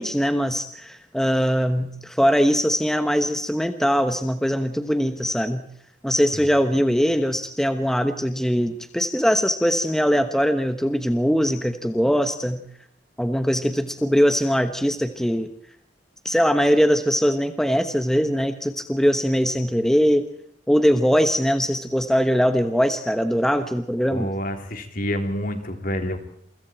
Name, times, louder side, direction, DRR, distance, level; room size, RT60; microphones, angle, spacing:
voice 1, 0.0-5.6 6.0-12.6 13.2-15.5 16.2-20.3 20.7-24.3, equal, 5° left, 8 dB, 1.2 m, -21 dB
voice 2, 24.1-26.2, equal, 50° left, 5 dB, 3.4 m, -28 dB
28.5 x 24.0 x 4.5 m, 0.70 s
head